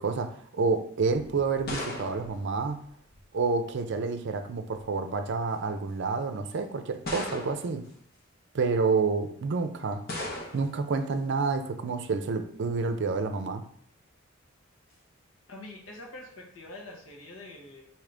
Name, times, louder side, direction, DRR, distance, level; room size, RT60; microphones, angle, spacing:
voice 1, 0.0-2.8 3.3-7.8 8.5-10.0 10.5-13.6, right 4 dB, 60° right, 8 dB, 0.5 m, -29 dB
sound 1, 1.1-3.4 4.4-4.9 5.7-5.8 7.0-7.9 10.1-10.8, left 1 dB, 50° left, 0.9 m, -38 dB
voice 2, 15.5-17.9, left 2 dB, 80° left, -1 dB, 1.1 m, -45 dB
5.0 x 2.8 x 3.3 m, 0.63 s
head